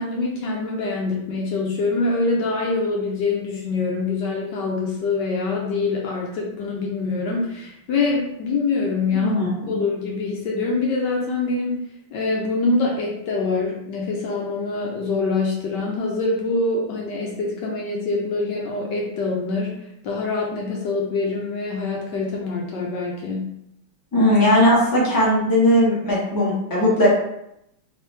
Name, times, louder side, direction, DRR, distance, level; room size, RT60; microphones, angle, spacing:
voice 1, 0.0-9.4 9.7-11.8 12.1-19.8 20.0-23.5, left 3 dB, 70° left, -2 dB, 1.2 m, -24 dB
voice 2, 9.2-9.7 24.1-27.1, left 1 dB, 15° left, -6 dB, 0.7 m, -18 dB
3.6 x 2.9 x 3.3 m, 0.79 s
omnidirectional pair, 2.2 m